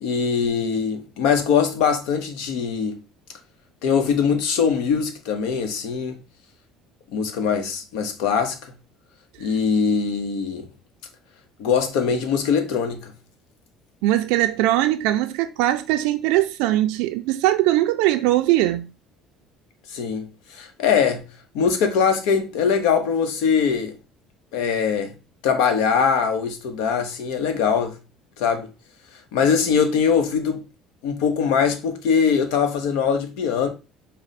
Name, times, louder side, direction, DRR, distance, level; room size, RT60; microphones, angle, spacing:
voice 1, 0.0-3.0 3.8-6.2 7.1-8.7 9.4-10.7 11.6-13.1 19.9-21.3 21.5-24.0 24.5-25.1 25.4-28.0 28.4-28.7 29.3-30.6 31.0-33.7, left 6 dB, 80° left, 0.8 m, -22 dB
voice 2, 14.0-18.9, right 15 dB, 85° right, 0.3 m, -20 dB
5.0 x 2.1 x 4.0 m
cardioid pair, 135°, 0 cm